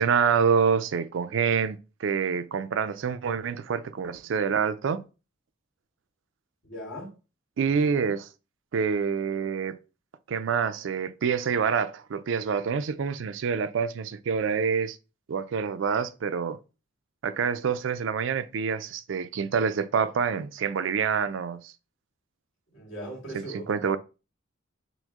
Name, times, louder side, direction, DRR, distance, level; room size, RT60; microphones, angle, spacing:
voice 1, 0.0-5.0 7.6-8.2 8.7-9.8 10.3-15.0 15.3-16.6 17.2-21.7 23.7-24.0, right 6 dB, 70° right, 0.4 m, -26 dB
voice 2, 6.6-7.2 7.6-8.1 22.7-23.9, right 1 dB, 70° left, 2.0 m, -40 dB
6.1 x 2.0 x 3.6 m
head